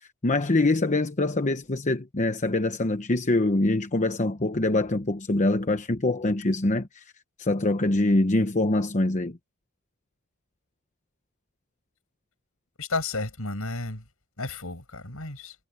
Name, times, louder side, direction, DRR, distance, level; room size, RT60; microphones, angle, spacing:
voice 1, 0.2-7.0 7.4-9.4, left 2 dB, 35° left, 1.0 m, -24 dB
voice 2, 12.8-14.0 14.4-15.6, left 3 dB, 80° left, 6.2 m, -32 dB
head